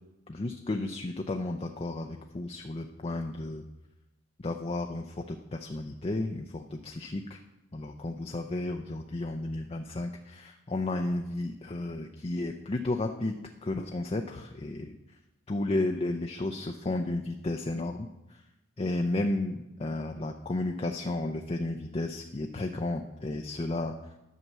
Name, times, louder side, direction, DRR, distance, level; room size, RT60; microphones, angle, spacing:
voice 1, 0.3-3.6 4.4-7.4 7.7-13.3 13.6-15.0 15.5-18.1 18.8-23.9, left 2 dB, 30° left, 4 dB, 0.5 m, -33 dB
11.0 x 5.9 x 7.3 m, 0.98 s
head